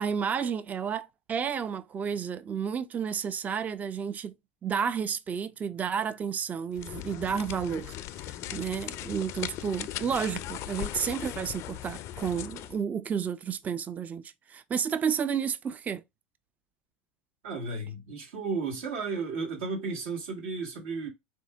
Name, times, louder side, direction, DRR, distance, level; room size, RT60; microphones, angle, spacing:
voice 1, 0.0-4.3 4.6-8.0 8.2-16.0, right 7 dB, 25° right, 0.4 m, -31 dB
sound 1, 6.7-12.8, left 13 dB, 50° left, 0.3 m, -38 dB
voice 2, 17.4-21.1, right 4 dB, 75° right, 1.7 m, -33 dB
3.6 x 2.6 x 3.5 m
hypercardioid pair, 100°, 6 cm